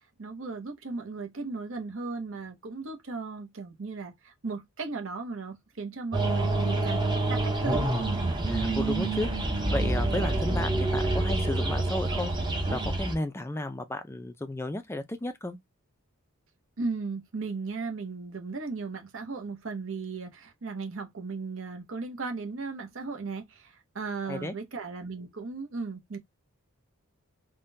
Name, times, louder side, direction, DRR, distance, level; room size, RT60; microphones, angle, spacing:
voice 1, 0.2-7.9 8.2-8.4 16.8-23.4 23.9-26.2, right 4 dB, 60° right, 0.8 m, -36 dB
sound 1, 6.1-13.2, right 2 dB, 20° right, 0.7 m, -27 dB
voice 2, 8.5-12.3 12.7-15.6 24.3-24.6, left 1 dB, 10° left, 0.4 m, -33 dB
3.5 x 2.2 x 2.6 m
head